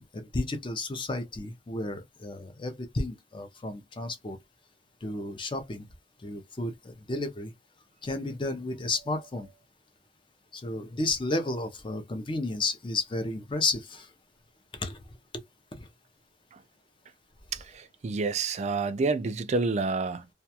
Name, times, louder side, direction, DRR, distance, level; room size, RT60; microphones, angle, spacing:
voice 1, 0.0-4.4 5.0-5.9 6.2-7.5 8.0-9.5 10.5-14.1 14.7-15.0 15.8-15.9, left 2 dB, 25° left, 0.5 m, -32 dB
voice 2, 17.5-20.3, right 4 dB, 35° right, 0.3 m, -29 dB
2.3 x 2.2 x 2.7 m
head